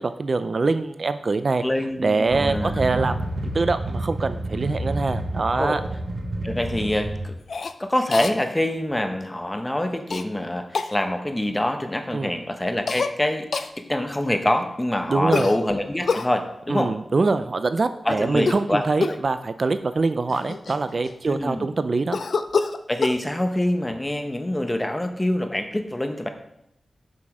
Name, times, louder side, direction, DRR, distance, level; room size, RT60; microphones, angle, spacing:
voice 1, 0.0-1.6 2.0-3.2 3.5-5.8 12.1-12.3 15.1-15.5 16.7-22.2, right 3 dB, 55° right, 11 dB, 0.4 m, -24 dB
voice 2, 1.6-2.8 5.6-5.8 6.4-7.4 7.8-16.9 18.0-18.8 21.3-21.7 22.9-26.3, left 1 dB, 15° left, 6 dB, 1.0 m, -25 dB
sound 1, 2.3-7.3, right 1 dB, 70° right, 1.2 m, -29 dB
Cough, 7.5-7.7 8.1-8.3 10.1-10.2 10.7-10.9 12.9-13.1 13.5-13.7 15.3-16.3 18.3-18.7 19.0-19.3 20.0-20.1 20.3-21.3 22.1-23.2, left 4 dB, 75° left, 0.4 m, -26 dB
7.5 x 6.1 x 4.9 m, 0.82 s
wide cardioid pair, 70°, 0 cm